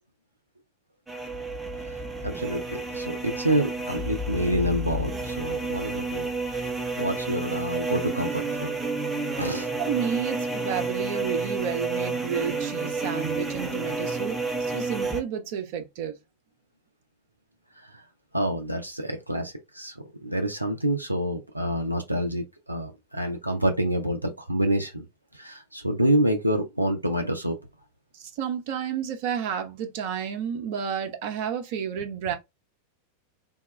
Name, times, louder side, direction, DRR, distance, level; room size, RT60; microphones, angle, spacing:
sound 1, 1.1-15.2, right 3 dB, 10° right, 0.7 m, -30 dB
voice 1, 2.2-6.7 7.0-8.7 9.4-9.7 17.8-18.0 18.3-25.1 25.3-27.6, right 1 dB, 85° right, 0.4 m, -27 dB
voice 2, 9.8-14.4 14.7-16.2 28.1-32.4, right 7 dB, 50° right, 0.7 m, -31 dB
3.4 x 2.2 x 3.1 m
figure-of-eight pair, 90°, 0 cm